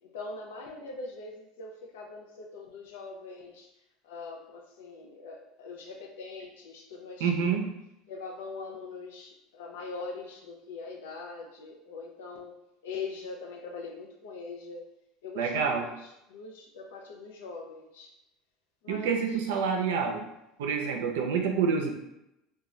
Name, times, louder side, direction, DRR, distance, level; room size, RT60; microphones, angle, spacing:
voice 1, 0.0-3.7 4.0-7.5 8.1-12.6 12.8-14.9 15.2-18.1 18.8-19.6, left 4 dB, 90° left, 2 dB, 0.5 m, -42 dB
voice 2, 7.2-7.7 15.4-15.9 18.9-20.2 20.6-21.9, right 6 dB, 85° right, 3 dB, 0.5 m, -27 dB
2.5 x 2.2 x 3.1 m, 0.86 s
supercardioid pair, 100°, 0 cm